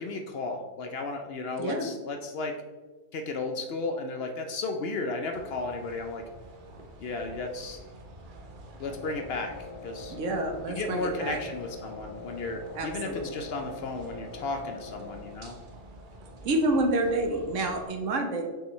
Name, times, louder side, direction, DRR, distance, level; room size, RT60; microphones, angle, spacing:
voice 1, 0.0-2.6 3.1-6.2 7.0-7.8 8.8-9.6 9.8-10.1 10.7-15.6, left 3 dB, 60° left, 4 dB, 0.7 m, -34 dB
sound 1, 5.3-17.9, right 1 dB, 50° right, 0.7 m, -48 dB
Wind instrument woodwind instrument, 8.8-15.5, left 4 dB, 80° left, 1.1 m, -44 dB
voice 2, 10.1-11.4 12.7-13.5 16.4-18.4, right 1 dB, 70° right, 4 dB, 1.2 m, -28 dB
6.0 x 5.6 x 3.1 m, 1.3 s
omnidirectional pair, 1.3 m